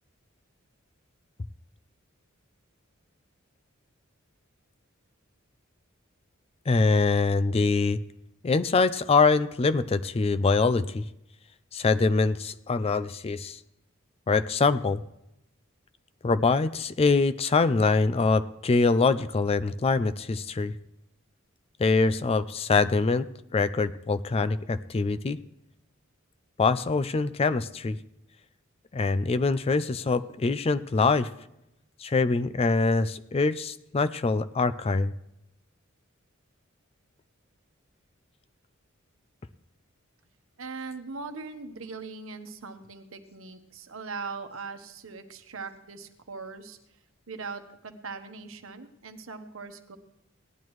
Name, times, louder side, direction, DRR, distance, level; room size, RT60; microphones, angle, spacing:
voice 1, 6.7-8.0 8.4-11.0 11.7-13.6 14.3-15.0 16.2-20.7 21.8-23.3 23.5-25.4 26.6-28.0 28.9-31.3 32.0-35.1, left 4 dB, 30° left, 14 dB, 0.4 m, -24 dB
voice 2, 40.6-46.8 47.3-50.0, right 4 dB, 75° right, 7 dB, 1.1 m, -40 dB
17.5 x 10.5 x 3.1 m, 0.84 s
head